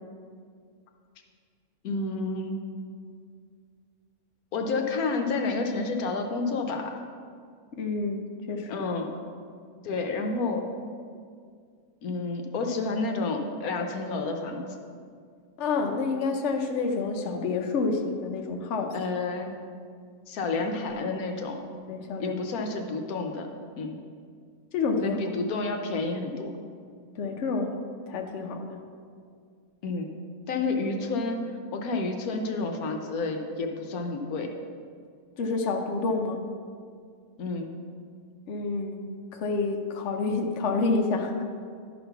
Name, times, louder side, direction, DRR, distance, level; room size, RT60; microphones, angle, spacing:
voice 1, 1.8-2.6 4.5-6.9 8.7-9.1 9.8-10.6 12.0-14.8 18.9-19.5 20.3-21.7 22.2-23.5 23.8-24.0 25.0-26.5 29.8-30.1 30.5-34.5 37.4-37.8, left 3 dB, 75° left, 4 dB, 1.2 m, -30 dB
voice 2, 7.7-8.8 15.6-18.9 21.9-22.3 24.7-25.2 27.1-27.8 28.1-28.8 35.4-36.4 38.5-41.4, left 4 dB, 60° left, 3 dB, 1.0 m, -28 dB
11.5 x 4.2 x 5.7 m, 2.1 s
omnidirectional pair, 1.6 m